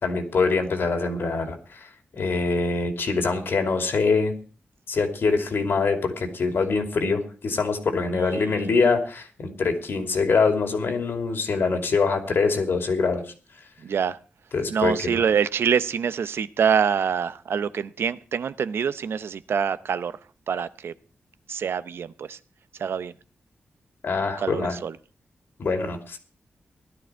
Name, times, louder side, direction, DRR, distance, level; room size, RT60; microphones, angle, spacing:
voice 1, 0.0-4.3 4.9-13.2 14.5-15.2 24.0-24.8 25.6-26.2, left 4 dB, 70° left, 5 dB, 2.8 m, -24 dB
voice 2, 8.1-8.7 13.8-14.2 14.7-20.2 20.5-20.9 21.5-22.4 22.8-23.1 24.4-25.0, right 7 dB, 80° right, 14 dB, 0.7 m, -25 dB
16.5 x 12.0 x 4.5 m, 0.37 s
wide cardioid pair, 95°, 4 cm